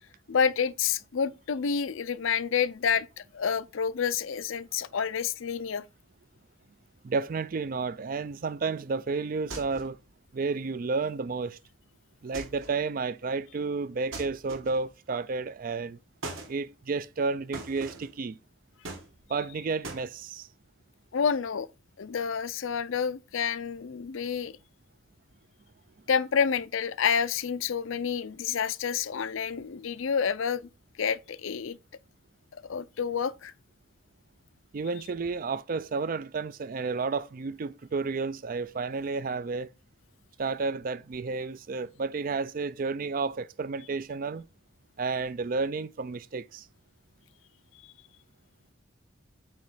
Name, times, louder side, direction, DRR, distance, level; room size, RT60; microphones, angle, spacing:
voice 1, 0.3-5.8 21.1-21.7 22.0-24.5 26.1-30.7 31.0-31.8 32.7-33.5, left 6 dB, 70° left, 0.5 m, -29 dB
voice 2, 7.0-10.0 10.3-11.6 12.2-16.0 16.5-18.4 19.3-20.5 34.7-39.7 40.4-44.5 45.0-46.7, right 4 dB, 40° right, 0.4 m, -31 dB
sound 1, 9.5-10.0 12.3-12.8 14.1-14.9 16.2-16.5 17.5-18.1 18.8-19.5 19.8-20.1, right 2 dB, 70° right, 2.3 m, -41 dB
8.9 x 3.1 x 5.5 m
head